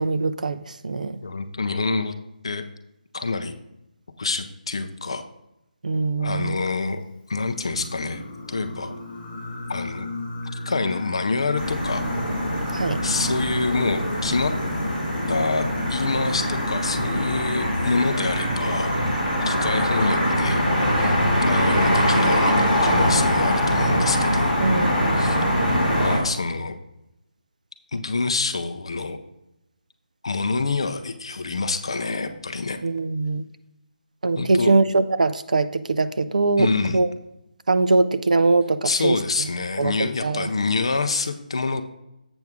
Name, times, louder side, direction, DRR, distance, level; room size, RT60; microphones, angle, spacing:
voice 1, 0.0-1.2 5.8-6.6 12.7-13.0 24.6-25.2 32.8-33.4 34.2-37.1 37.7-39.2 39.8-40.5, right 3 dB, 55° right, 12 dB, 0.4 m, -22 dB
voice 2, 1.2-2.1 2.4-2.6 3.1-3.6 4.2-5.2 6.2-7.0 7.3-8.9 9.7-10.1 10.7-12.0 13.0-14.5 15.3-18.9 19.4-20.6 21.0-24.6 25.1-25.4 26.0-26.8 27.9-29.2 30.2-32.8 34.4-34.7 36.6-37.0 38.8-41.8, left 3 dB, 35° left, 8 dB, 0.5 m, -26 dB
Singing, 7.4-18.1, left 3 dB, 10° left, 1.0 m, -36 dB
sound 1, 11.6-26.2, equal, 5° right, 1.6 m, -22 dB
7.9 x 6.0 x 3.5 m, 0.87 s
hypercardioid pair, 180°, 5 cm